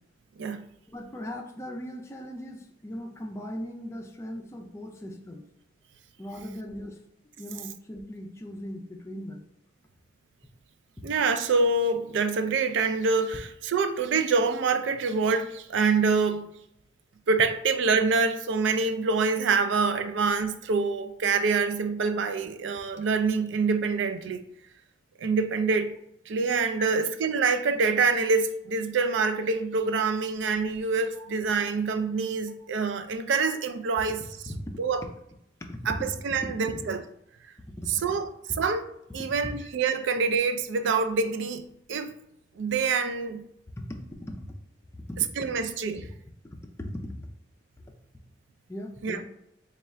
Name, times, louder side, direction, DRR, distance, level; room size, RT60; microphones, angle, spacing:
voice 1, 0.9-5.5 6.2-7.0 7.4-9.4 26.8-26.9 31.2-31.3 34.5-34.6 35.7-35.8 36.4-36.8 37.8-38.0 39.4-39.6 43.8-44.5 44.9-45.3 46.4-47.3 48.7-49.3, left 1 dB, 15° left, 0.4 m, -39 dB
voice 2, 11.0-16.5 17.3-24.4 25.2-25.9 26.3-34.2 34.8-35.0 35.9-37.0 37.9-38.3 38.6-38.9 39.1-42.2 42.6-43.5 45.4-46.1 49.0-49.2, right 4 dB, 70° right, 0.3 m, -26 dB
3.3 x 2.4 x 4.3 m
head